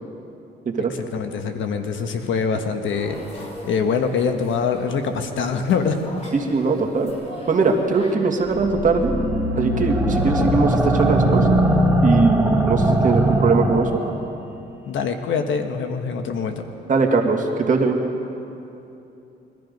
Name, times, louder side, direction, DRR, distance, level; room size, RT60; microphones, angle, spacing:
voice 1, 0.8-6.0 14.9-16.7, left 5 dB, 75° left, 6 dB, 1.3 m, -24 dB
sound 1, 2.9-8.2, equal, 35° left, 3.3 m, -39 dB
voice 2, 6.3-7.1 7.5-9.1 9.6-11.5 12.0-13.9 16.9-18.0, right 4 dB, 40° right, 2 dB, 1.9 m, -20 dB
sound 2, 8.5-14.1, right 1 dB, 10° right, 1.8 m, -20 dB
21.5 x 13.0 x 5.3 m, 2.8 s
cardioid pair, 90°, 20 cm